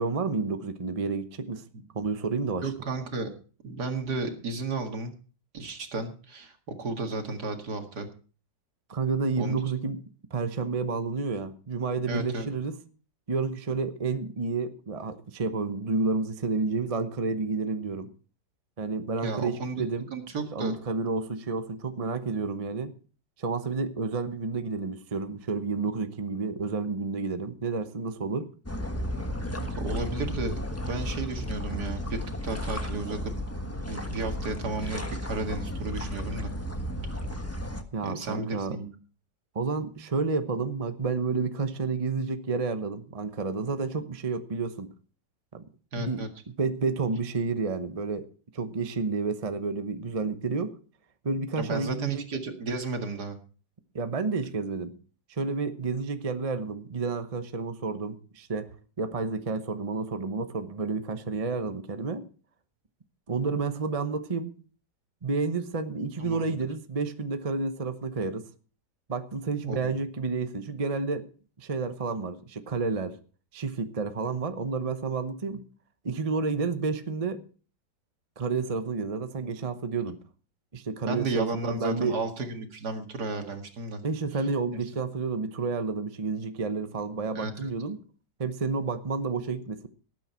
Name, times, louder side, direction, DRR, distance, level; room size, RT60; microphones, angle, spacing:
voice 1, 0.0-1.6 1.9-2.7 8.9-10.0 10.3-12.8 13.3-18.1 18.8-20.1 20.5-22.9 23.4-28.5 37.9-38.8 39.5-44.9 45.5-45.6 46.0-50.8 51.2-52.2 53.9-55.0 55.3-58.7 59.0-62.2 63.3-64.6 65.2-68.5 69.1-71.3 71.6-73.2 73.5-75.6 76.0-77.4 78.4-80.2 80.7-82.2 84.0-88.1 88.4-89.9, right 4 dB, 25° right, 9 dB, 0.8 m, -30 dB
voice 2, 2.6-3.3 3.6-5.1 5.5-8.1 9.4-9.6 12.1-12.5 19.2-19.8 20.1-20.8 29.6-30.6 30.9-33.3 33.9-36.5 38.0-38.9 45.9-46.3 51.6-53.4 66.2-66.6 69.6-70.0 81.0-84.0 87.3-87.7, right 3 dB, 65° right, 5 dB, 2.5 m, -33 dB
sound 1, 28.7-37.8, left 1 dB, 10° left, 1.1 m, -33 dB
18.5 x 8.9 x 4.4 m, 0.38 s
omnidirectional pair, 1.9 m